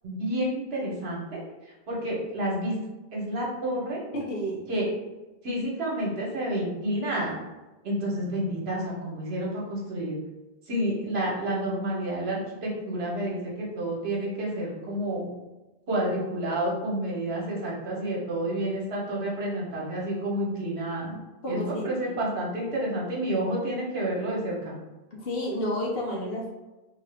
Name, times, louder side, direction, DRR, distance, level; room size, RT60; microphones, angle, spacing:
voice 1, 0.0-1.4 1.9-2.8 3.1-4.0 4.7-4.9 5.4-7.4 7.8-10.2 10.7-15.3 15.9-21.1 21.5-24.8, right 1 dB, 75° right, -4 dB, 1.2 m, -29 dB
voice 2, 4.1-4.7 21.4-22.2 25.1-26.5, equal, 65° left, -2 dB, 0.9 m, -31 dB
2.8 x 2.3 x 3.3 m, 1.1 s
omnidirectional pair, 1.1 m